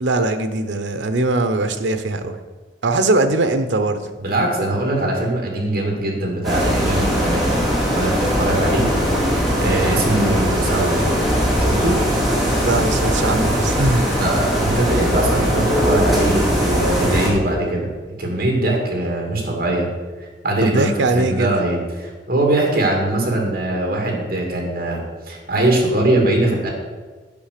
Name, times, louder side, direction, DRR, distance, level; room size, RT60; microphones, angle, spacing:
voice 1, 0.0-2.4 2.8-4.0 10.1-10.4 12.6-14.1 20.6-21.5, right 2 dB, 80° right, 9 dB, 0.7 m, -20 dB
voice 2, 4.2-8.8 9.6-11.0 11.6-12.0 14.1-17.9 18.2-19.9 20.4-26.7, right 1 dB, 55° right, 0 dB, 2.3 m, -21 dB
sound 1, 6.4-17.3, equal, ahead, 2.5 m, -20 dB
8.6 x 5.7 x 6.6 m, 1.4 s
head